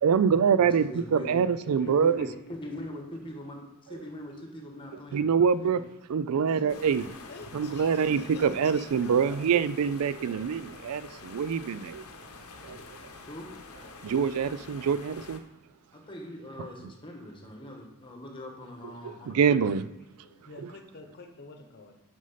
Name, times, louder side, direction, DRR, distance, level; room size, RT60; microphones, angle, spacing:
voice 1, 0.0-2.3 5.1-5.8 6.1-7.1 7.5-12.0 12.6-12.8 14.0-15.4 19.0-19.8, right 6 dB, 80° right, 0.4 m, -25 dB
voice 2, 0.5-1.3 1.9-5.3 5.6-5.8 13.3-13.5 15.9-19.7, left 1 dB, 25° left, 1.3 m, -42 dB
voice 3, 1.2-2.7 6.5-9.4 20.2-22.0, left 2 dB, 45° left, 1.0 m, -48 dB
sound 1, 6.7-15.4, left 3 dB, 75° left, 0.8 m, -47 dB
6.2 x 5.3 x 5.7 m
head